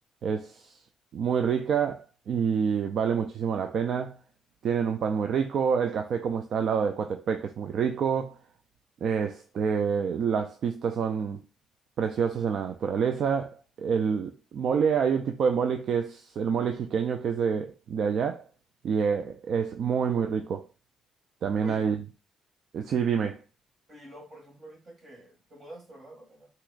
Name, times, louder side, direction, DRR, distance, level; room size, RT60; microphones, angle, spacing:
voice 1, 0.2-0.7 1.1-4.2 4.6-8.4 9.0-11.4 12.0-18.4 18.8-20.7 21.4-22.0 22.7-23.4, right 6 dB, 65° right, 0.4 m, -27 dB
voice 2, 21.6-21.9 23.9-26.5, equal, 40° right, 2.0 m, -47 dB
6.0 x 3.0 x 2.4 m
cardioid pair, 90°, 0 cm